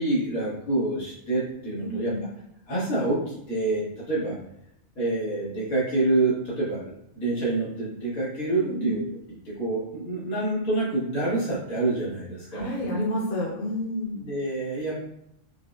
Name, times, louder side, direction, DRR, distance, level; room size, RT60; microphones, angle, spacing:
voice 1, 0.0-2.1 2.7-4.3 4.9-9.0 9.4-12.7 14.2-14.9, right 2 dB, 85° left, -8 dB, 1.8 m, -27 dB
voice 2, 1.8-2.2 8.5-8.9 12.5-14.2, left 1 dB, 55° left, -2 dB, 0.9 m, -30 dB
5.0 x 2.0 x 2.4 m, 0.75 s
omnidirectional pair, 1.4 m